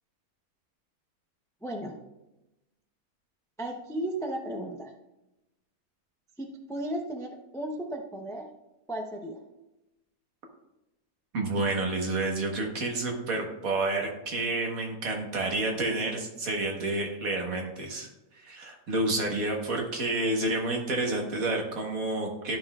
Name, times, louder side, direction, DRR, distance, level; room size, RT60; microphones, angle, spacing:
voice 1, 1.6-2.0 3.6-4.9 6.4-8.5 8.9-9.4, right 1 dB, 5° left, 2 dB, 0.3 m, -35 dB
voice 2, 11.3-18.1 18.4-22.6, right 2 dB, 70° right, 1 dB, 1.7 m, -29 dB
12.0 x 5.5 x 2.4 m, 0.96 s
omnidirectional pair, 1.5 m